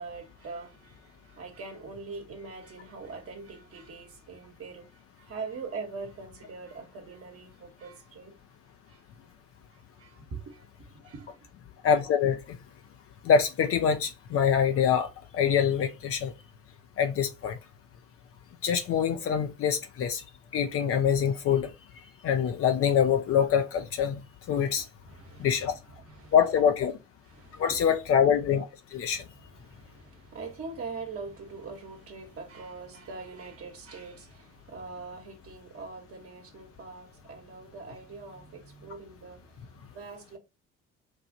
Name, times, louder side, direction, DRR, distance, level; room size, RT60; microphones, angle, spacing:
voice 1, 0.0-4.9 5.2-8.3 8.9-9.0 10.0-10.6 11.0-11.3 24.7-26.3 27.3-27.8 29.0-40.4, right 4 dB, 40° right, 1.1 m, -43 dB
voice 2, 11.8-12.6 13.2-15.1 15.3-16.3 17.0-17.6 18.6-20.2 20.5-21.7 22.2-24.2 24.5-24.8 25.4-25.7 26.3-26.9 27.6-28.7 28.9-29.2, left 7 dB, 40° left, 0.6 m, -24 dB
4.6 x 2.4 x 2.6 m
figure-of-eight pair, 50°, 37 cm